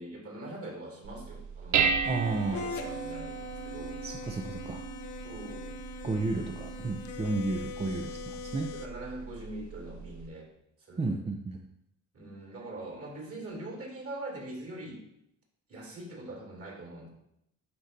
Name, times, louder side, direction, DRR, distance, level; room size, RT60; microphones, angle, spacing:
voice 1, 0.0-3.9 5.2-5.7 7.2-7.4 8.6-10.5 10.9-11.2 12.1-15.0 15.7-17.1, right 1 dB, 50° right, -1 dB, 2.5 m, -43 dB
Dishes pots and pans, 1.0-10.3, right 6 dB, 70° right, 0.6 m, -35 dB
sound 1, 2.0-8.9, left 4 dB, 70° left, 0.7 m, -42 dB
voice 2, 2.0-2.6 4.0-4.8 6.0-8.7 11.0-11.6, right 3 dB, 20° right, 3 dB, 0.5 m, -32 dB
11.0 x 4.0 x 2.6 m, 0.80 s
cardioid pair, 90°, 30 cm